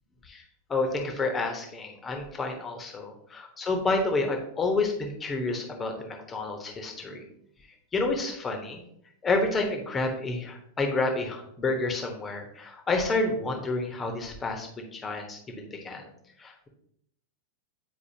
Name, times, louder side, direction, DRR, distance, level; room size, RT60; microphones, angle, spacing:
voice 1, 0.7-7.2 7.9-8.8 9.2-16.1 16.4-16.7, left 3 dB, 20° left, 3 dB, 1.2 m, -29 dB
8.6 x 4.7 x 2.8 m, 0.72 s
figure-of-eight pair, 90°, 0 cm